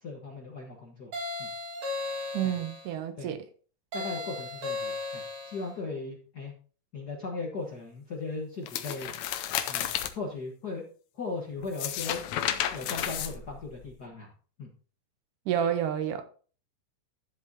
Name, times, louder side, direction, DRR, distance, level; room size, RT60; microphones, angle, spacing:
voice 1, 0.0-1.1 1.4-1.5 2.4-2.5 3.2-3.3 3.9-6.5 6.9-9.2 9.7-9.9 10.1-10.8 11.1-12.2 12.7-14.3 14.6-14.7, left 3 dB, 50° left, 1.2 m, -37 dB
sound 1, 1.1-2.9 3.9-5.7, left 3 dB, 55° right, 3.0 m, -36 dB
voice 2, 2.3-3.5 15.5-16.2, right 9 dB, 85° right, 2.4 m, -29 dB
sound 2, 8.7-10.1 11.6-13.9, left 11 dB, 75° left, 1.9 m, -32 dB
12.0 x 7.6 x 2.8 m
omnidirectional pair, 3.6 m